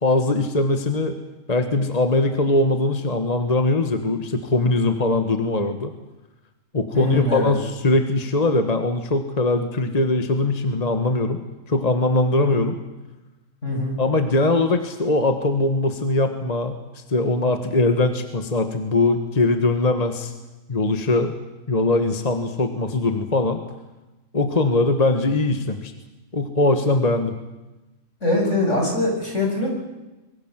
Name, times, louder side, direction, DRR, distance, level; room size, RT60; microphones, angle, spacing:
voice 1, 0.0-1.2 1.5-5.9 6.7-11.4 11.7-12.7 14.0-20.3 20.7-21.3 21.7-23.6 24.3-25.9 26.3-27.3, left 2 dB, 30° left, 7 dB, 1.6 m, -21 dB
voice 2, 6.9-7.5 12.4-12.7 13.6-14.0 28.2-29.7, left 2 dB, 70° left, 0 dB, 7.9 m, -23 dB
25.5 x 23.0 x 7.5 m, 1.1 s
omnidirectional pair, 1.3 m